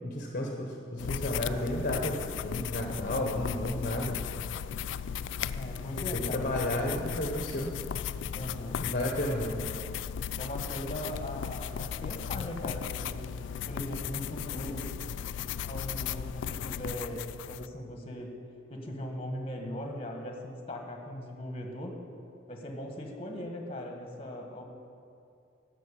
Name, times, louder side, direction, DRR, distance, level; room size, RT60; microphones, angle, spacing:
voice 1, 0.0-4.2 6.1-7.7 8.8-9.6, left 1 dB, 45° left, 1 dB, 1.0 m, -32 dB
sound 1, 1.0-17.7, left 8 dB, 85° left, 0.3 m, -36 dB
voice 2, 5.5-6.6 8.3-8.8 10.4-13.2 13.7-14.9 15.7-18.3 18.7-22.0 22.5-24.6, equal, 30° left, 2 dB, 1.5 m, -39 dB
12.0 x 6.5 x 8.3 m, 2.5 s
head